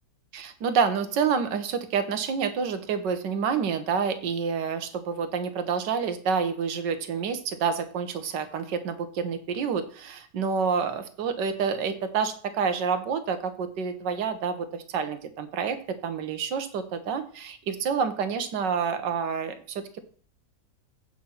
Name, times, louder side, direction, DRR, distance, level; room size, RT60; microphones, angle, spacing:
voice 1, 0.3-15.8 16.0-20.0, right 6 dB, 80° right, 9 dB, 1.7 m, -28 dB
8.9 x 5.7 x 5.7 m, 0.43 s
omnidirectional pair, 1.9 m